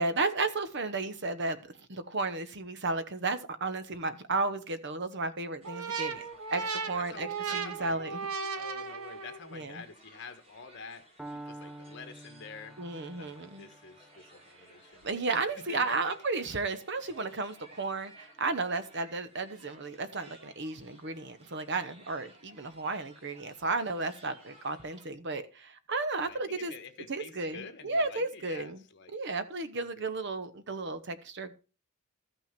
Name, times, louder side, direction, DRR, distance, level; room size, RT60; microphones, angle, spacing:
voice 1, 0.0-1.6 1.9-6.2 6.5-7.3 7.5-8.2 9.5-9.8 12.8-13.7 15.0-26.7 27.1-28.8 29.1-31.5, right 3 dB, 50° right, 1.0 m, -33 dB
sound 1, 5.6-25.1, right 1 dB, 25° right, 2.6 m, -58 dB
sound 2, 5.6-9.5, right 5 dB, 80° right, 1.1 m, -36 dB
voice 2, 6.0-6.6 6.9-8.0 8.4-12.8 13.1-15.1 15.3-16.0 26.2-29.1 29.7-30.1, left 5 dB, 50° left, 1.5 m, -48 dB
Piano, 11.2-19.1, right 1 dB, 5° right, 0.5 m, -51 dB
13.5 x 6.0 x 4.4 m
head